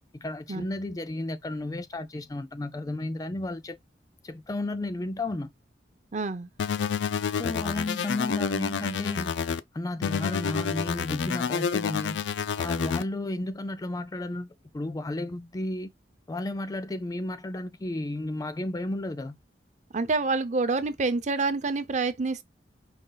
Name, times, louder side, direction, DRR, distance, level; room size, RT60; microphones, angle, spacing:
voice 1, 0.2-3.8 4.2-5.5 7.3-9.3 9.7-12.2 12.6-15.9 16.3-19.4, left 2 dB, 20° left, 0.3 m, -33 dB
voice 2, 6.1-6.5 19.9-22.4, right 3 dB, 40° right, 0.6 m, -27 dB
sound 1, 6.6-9.6 10.0-13.0, left 6 dB, 85° left, 0.4 m, -29 dB
5.1 x 2.3 x 3.8 m
head